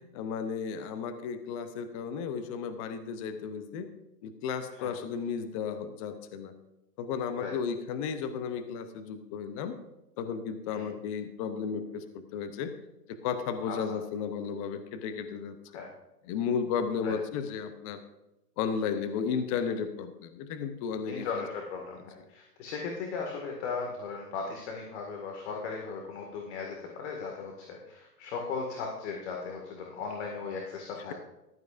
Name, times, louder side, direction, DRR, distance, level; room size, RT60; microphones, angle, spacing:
voice 1, 0.0-3.9 4.2-6.6 7.0-9.8 10.2-12.7 13.1-15.6 16.3-18.0 18.6-21.3, left 6 dB, 20° left, 9 dB, 0.6 m, -34 dB
voice 2, 21.1-22.0 22.3-31.1, left 5 dB, 45° left, 1 dB, 2.0 m, -37 dB
14.5 x 12.0 x 2.5 m, 0.96 s
hypercardioid pair, 135°, 48 cm